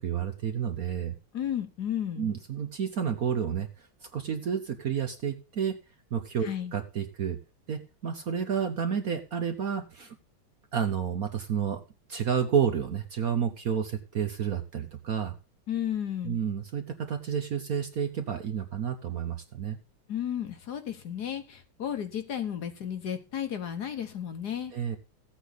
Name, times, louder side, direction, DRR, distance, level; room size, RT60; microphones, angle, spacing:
voice 1, 0.0-1.2 2.2-3.9 4.1-5.8 6.1-7.4 7.7-10.2 10.7-11.8 12.1-15.3 16.2-19.8 24.7-25.0, right 7 dB, 55° right, 7 dB, 1.1 m, -30 dB
voice 2, 1.3-2.3 6.4-6.7 15.7-16.4 20.1-24.7, left 9 dB, 55° left, 9 dB, 1.5 m, -33 dB
14.5 x 8.3 x 4.0 m, 0.31 s
omnidirectional pair, 2.3 m